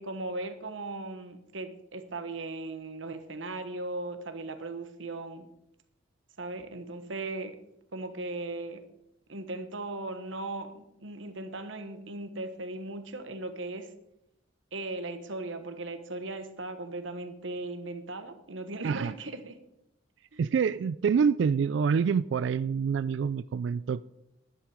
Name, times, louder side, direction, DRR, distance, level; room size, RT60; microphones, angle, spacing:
voice 1, 0.0-5.4 6.4-7.6 7.9-8.8 9.3-13.9 14.7-19.6 20.3-20.5, right 2 dB, 80° right, 9 dB, 1.3 m, -38 dB
voice 2, 20.4-24.0, right 6 dB, 65° right, 16 dB, 0.3 m, -26 dB
11.0 x 10.0 x 5.0 m, 0.81 s
head